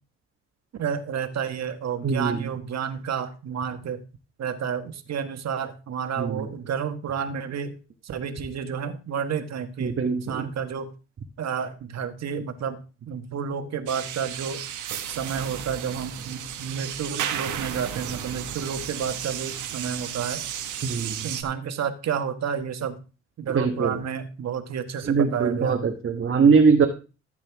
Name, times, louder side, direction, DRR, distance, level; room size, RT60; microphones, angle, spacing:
voice 1, 0.8-4.0 4.4-7.8 8.0-10.9 11.4-14.6 15.1-20.4 21.2-23.0 23.4-25.9 26.3-26.5, right 7 dB, 60° right, 8 dB, 1.7 m, -30 dB
voice 2, 2.0-2.4 6.2-6.4 9.8-10.4 20.8-21.1 23.5-23.9 25.0-26.9, right 5 dB, 40° right, 3 dB, 1.5 m, -21 dB
sound 1, 13.9-21.4, right 10 dB, 80° right, 1.5 m, -33 dB
14.5 x 8.2 x 3.6 m, 0.33 s
cardioid pair, 90°, 30 cm